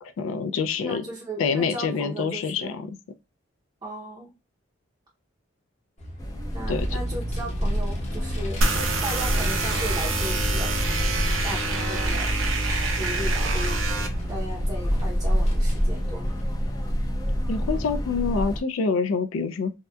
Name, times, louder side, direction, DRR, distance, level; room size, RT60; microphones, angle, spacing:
voice 1, 0.0-1.0 1.4-3.0 6.7-6.9 17.5-19.7, left 5 dB, 90° left, 0.3 m, -26 dB
voice 2, 0.8-2.8 3.8-4.4 6.5-10.8 11.4-12.3 13.0-13.8 14.3-16.4, right 1 dB, 25° right, 0.6 m, -36 dB
Vehicle, 6.0-16.9, equal, 35° left, 0.8 m, -36 dB
sound 1, 6.2-18.6, equal, 20° left, 0.4 m, -27 dB
sound 2, 8.6-14.1, right 3 dB, 90° right, 0.6 m, -27 dB
2.7 x 2.1 x 2.2 m
head